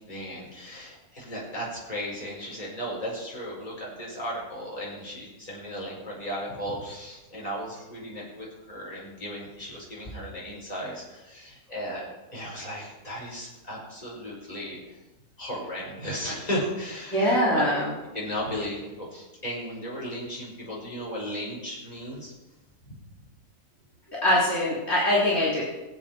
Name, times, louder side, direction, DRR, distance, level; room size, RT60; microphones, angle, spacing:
voice 1, 0.0-15.0 15.4-17.9 18.1-22.3 22.9-23.0, equal, 25° left, -5 dB, 5.0 m, -35 dB
voice 2, 17.1-17.9 24.1-25.6, left 1 dB, 45° left, -8 dB, 4.2 m, -23 dB
23.0 x 8.5 x 4.6 m, 1.1 s
omnidirectional pair, 1.5 m